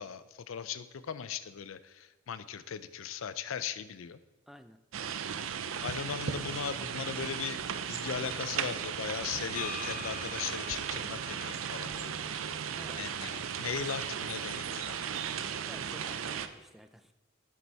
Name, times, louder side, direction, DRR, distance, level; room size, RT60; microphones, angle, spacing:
voice 1, 0.0-4.2 5.8-7.6 7.9-12.6 13.0-15.0, left 7 dB, 80° left, 14 dB, 0.5 m, -38 dB
voice 2, 4.5-4.8 12.7-13.1 15.7-17.1, equal, ahead, 9 dB, 0.3 m, -52 dB
sound 1, 4.9-16.5, right 7 dB, 85° right, 0.5 m, -36 dB
sound 2, 9.6-13.6, left 5 dB, 40° left, 0.7 m, -46 dB
7.4 x 6.8 x 4.7 m, 1.1 s
head